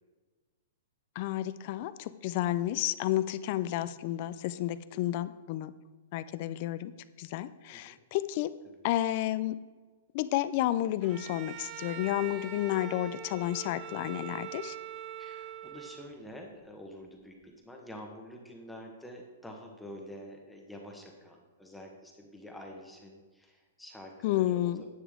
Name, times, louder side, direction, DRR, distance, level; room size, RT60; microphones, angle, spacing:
voice 1, 1.2-5.7 6.1-6.9 7.2-8.5 8.8-9.6 10.1-14.8 24.2-24.8, left 14 dB, 45° left, 14 dB, 0.4 m, -31 dB
Bowed string instrument, 11.0-16.3, right 9 dB, 30° right, 0.5 m, -43 dB
voice 2, 15.2-24.7, equal, 5° left, 0 dB, 1.1 m, -47 dB
10.0 x 7.0 x 3.6 m, 1.3 s
hypercardioid pair, 150°, 0 cm